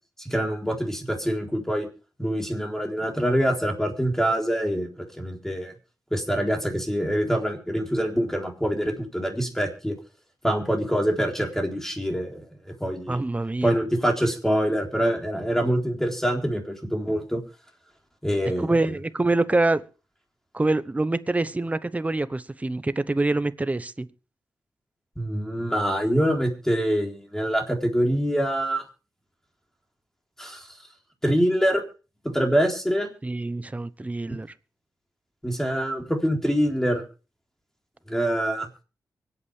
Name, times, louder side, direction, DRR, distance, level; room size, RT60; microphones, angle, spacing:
voice 1, 0.2-1.9 2.2-5.7 6.1-10.0 10.4-13.2 13.6-17.4 18.2-19.0 25.2-28.8 30.4-30.7 31.2-31.8 32.2-33.1 35.4-37.0 38.1-38.7, equal, 5° left, 3.9 m, -25 dB
voice 2, 13.1-13.8 18.6-19.8 20.5-24.1 33.2-34.5, right 2 dB, 20° right, 0.9 m, -25 dB
24.5 x 8.6 x 3.3 m
cardioid pair, 70°, 7 cm